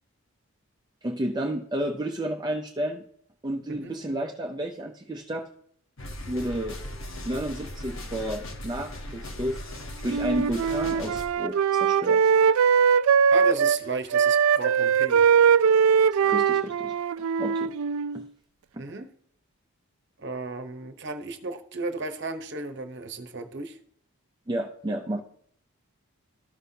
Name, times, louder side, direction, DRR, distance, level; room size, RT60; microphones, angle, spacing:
voice 1, 1.0-3.0 3.4-5.5 6.3-6.8 7.3-9.6 10.0-12.2 16.2-17.7 18.1-18.2 18.7-18.8 24.5-25.2, right 1 dB, 20° right, 2 dB, 0.5 m, -31 dB
sound 1, 6.0-11.3, left 1 dB, 65° left, 1.2 m, -38 dB
Wind instrument woodwind instrument, 10.1-13.8 14.1-18.2, right 7 dB, 70° right, 0.3 m, -21 dB
voice 2, 13.3-15.2 18.8-19.1 20.2-23.7, right 3 dB, 50° right, 7 dB, 0.9 m, -34 dB
13.5 x 5.5 x 2.8 m, 0.63 s
head